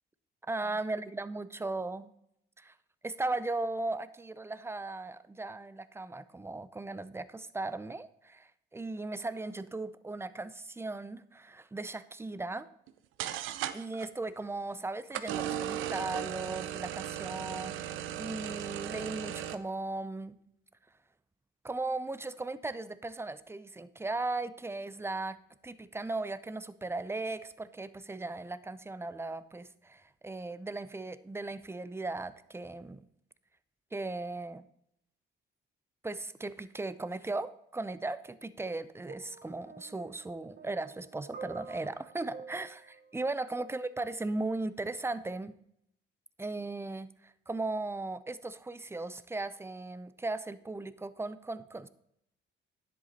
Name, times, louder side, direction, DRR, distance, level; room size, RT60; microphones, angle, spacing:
voice 1, 0.5-2.1 2.6-2.7 3.0-12.7 13.7-20.4 21.6-25.4 25.6-33.1 33.9-34.7 36.0-45.6 46.4-51.9, right 2 dB, 10° right, 14 dB, 0.6 m, -37 dB
sound 1, 12.9-13.0 13.2-14.1 15.1-19.6, right 11 dB, 90° right, 0.6 m, -37 dB
sound 2, 39.1-44.2 45.1-45.3, right 5 dB, 60° right, 1.1 m, -50 dB
10.5 x 7.9 x 4.2 m, 0.74 s
cardioid pair, 90°, 20 cm